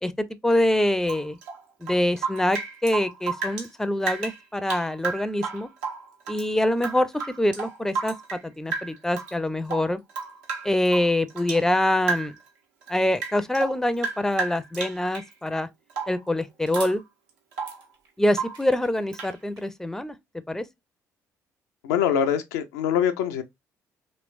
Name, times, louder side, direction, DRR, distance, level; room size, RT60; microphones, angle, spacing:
voice 1, 0.0-1.4 1.8-5.7 6.3-7.1 7.4-10.0 10.6-12.3 12.9-15.7 16.1-17.0 18.2-20.1 20.5-20.6, left 1 dB, 5° left, 0.5 m, -25 dB
Rain / Drip, 1.0-3.7 4.0-6.5 6.8-8.4 8.7-9.3 9.6-11.7 12.0-12.5 12.8-15.3 15.9-16.3 16.7-17.0 17.3-17.8 18.3-18.7 19.1-19.4, right 5 dB, 75° right, 1.0 m, -33 dB
sound 1, 13.2-13.3 14.8-15.4 16.6-17.0 17.5-19.7, right 4 dB, 60° right, 1.3 m, -45 dB
voice 2, 21.8-23.4, left 8 dB, 75° left, 0.4 m, -23 dB
3.1 x 3.0 x 2.5 m
figure-of-eight pair, 45°, 9 cm